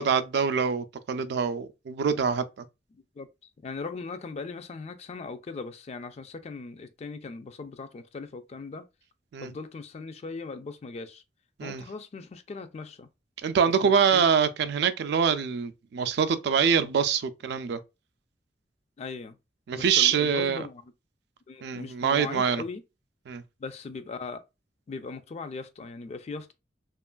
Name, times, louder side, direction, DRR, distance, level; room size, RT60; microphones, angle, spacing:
voice 1, 0.0-2.4 9.3-9.5 11.6-11.8 13.4-17.8 19.7-20.7 21.6-22.6 23.3-23.4, right 6 dB, 65° right, 0.3 m, -25 dB
voice 2, 2.9-3.3 3.6-8.9 9.4-11.2 11.6-13.1 13.8-14.3 19.0-19.4 19.7-20.9 21.5-22.8 23.6-24.4 24.9-26.5, left 4 dB, 35° left, 0.3 m, -39 dB
3.0 x 2.4 x 2.2 m
head